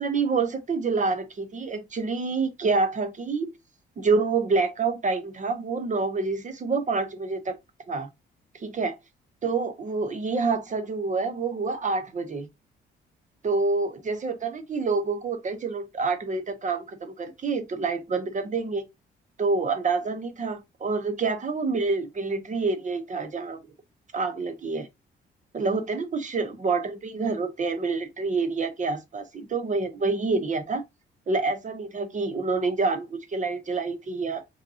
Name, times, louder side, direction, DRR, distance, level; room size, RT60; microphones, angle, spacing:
voice 1, 0.0-3.5 4.0-7.5 7.9-8.1 8.5-8.9 9.4-12.5 13.4-18.8 19.4-23.6 24.1-24.9 25.5-30.8 31.3-34.4, right 4 dB, 40° right, 0.7 m, -27 dB
5.0 x 2.8 x 2.6 m
cardioid pair, 90°, 20 cm